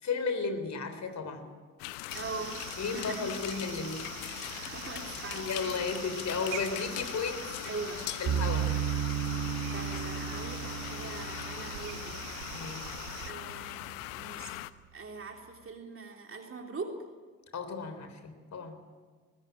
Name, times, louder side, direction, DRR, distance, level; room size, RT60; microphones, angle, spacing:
voice 1, 0.0-1.5 2.8-4.1 5.3-7.7 8.2-8.7 12.5-12.9 17.5-18.8, left 4 dB, 40° left, 8 dB, 3.7 m, -34 dB
sound 1, 1.8-14.7, left 18 dB, 65° left, 0.8 m, -41 dB
voice 2, 2.1-2.7 2.9-3.3 4.5-5.8 7.6-8.1 9.7-12.2 13.2-14.7 14.9-17.0, right 4 dB, 30° right, 3 dB, 3.5 m, -42 dB
sound 2, 2.1-13.3, right 18 dB, 70° right, 0.7 m, -45 dB
sound 3, 8.3-13.4, right 9 dB, 50° right, 1.6 m, -34 dB
21.0 x 20.0 x 9.1 m, 1.5 s
figure-of-eight pair, 45°, 42 cm